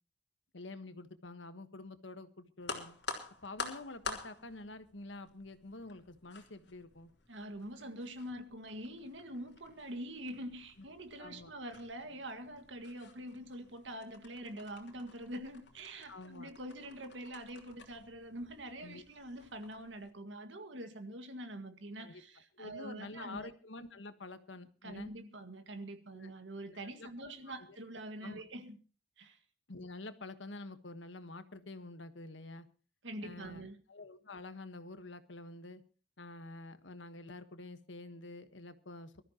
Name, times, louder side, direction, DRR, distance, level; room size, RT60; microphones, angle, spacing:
voice 1, 0.5-3.0 3.4-7.1 11.2-11.5 16.1-16.5 18.8-19.0 22.0-22.2 22.6-25.1 26.1-26.3 26.7-27.5 28.2-28.4 29.7-32.7 33.2-35.8 36.2-39.2, left 2 dB, 85° left, 1.4 m, -48 dB
sound 1, 2.6-20.1, left 4 dB, 65° left, 3.5 m, -49 dB
voice 2, 7.3-23.5 24.8-28.8 29.2-29.4 33.0-33.8, right 1 dB, 85° right, 1.9 m, -45 dB
23.5 x 13.5 x 3.0 m
head